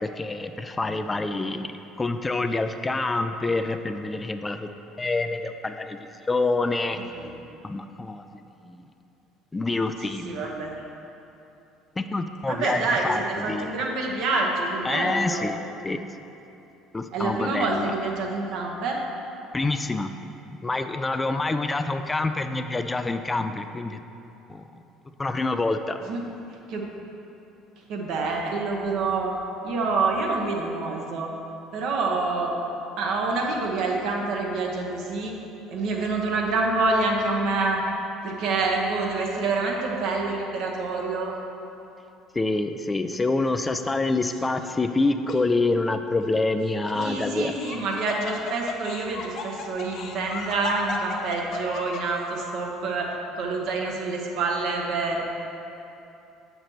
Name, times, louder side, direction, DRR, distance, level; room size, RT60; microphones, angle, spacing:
voice 1, 0.0-1.7 2.0-4.7 5.0-7.0 7.6-8.2 8.6-8.8 9.5-10.5 12.0-12.8 13.1-13.8 14.8-15.6 15.8-16.1 16.9-17.9 19.5-20.1 20.6-24.0 24.5-24.6 25.2-26.0 42.3-47.6, left 3 dB, 20° left, 8 dB, 0.3 m, -26 dB
voice 2, 7.0-7.3 10.0-10.8 12.5-15.5 17.1-19.0 26.0-26.2 26.7-26.8 27.9-29.3 29.6-31.3 31.7-32.5 33.0-35.3 35.7-37.8 38.2-41.4 46.9-53.1 53.4-55.2, right 3 dB, 65° right, 0 dB, 1.0 m, -27 dB
Laughter, 44.2-44.7 45.3-45.4 46.6-52.2, left 5 dB, 55° left, 0.7 m, -36 dB
7.5 x 6.6 x 3.0 m, 2.8 s
hypercardioid pair, 60°, 0 cm